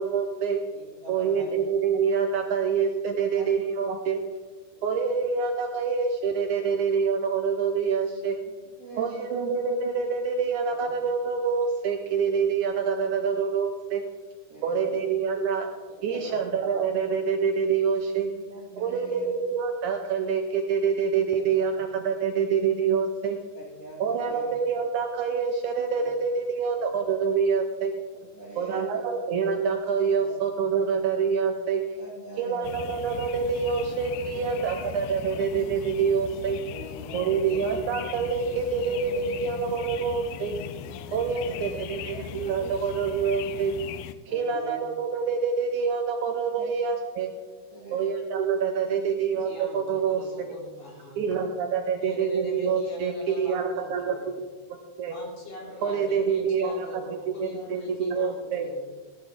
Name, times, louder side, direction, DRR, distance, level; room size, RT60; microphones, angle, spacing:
voice 1, 0.0-0.6 1.1-4.2 4.8-8.4 9.0-14.0 14.6-15.7 16.0-18.3 18.8-23.4 24.0-28.0 28.6-31.8 32.4-36.6 37.1-40.6 41.1-43.7 44.3-47.3 47.9-50.5 51.2-55.1 55.8-58.7, right 6 dB, 75° right, 4 dB, 1.9 m, -26 dB
voice 2, 0.7-1.5 3.1-3.5 4.7-4.8 6.6-6.7 8.1-9.6 10.7-10.9 13.4-13.5 14.5-15.0 15.9-16.8 18.2-19.4 21.2-21.8 23.5-24.5 25.9-26.1 26.7-27.0 28.1-29.0 30.2-31.0 32.0-33.0 34.2-35.3 36.3-37.6 38.7-39.8 41.4-42.9 44.3-44.8 46.5-46.7 47.7-48.1 48.8-49.2 50.1-50.2 51.4-51.5 55.6-56.1, right 1 dB, 40° right, -3 dB, 1.2 m, -45 dB
sound 1, 32.6-44.1, left 11 dB, 85° left, 2.3 m, -39 dB
voice 3, 49.5-51.2 52.0-54.3 55.1-58.8, right 1 dB, 65° left, -3 dB, 4.7 m, -41 dB
15.5 x 11.5 x 3.6 m, 1.4 s
omnidirectional pair, 4.1 m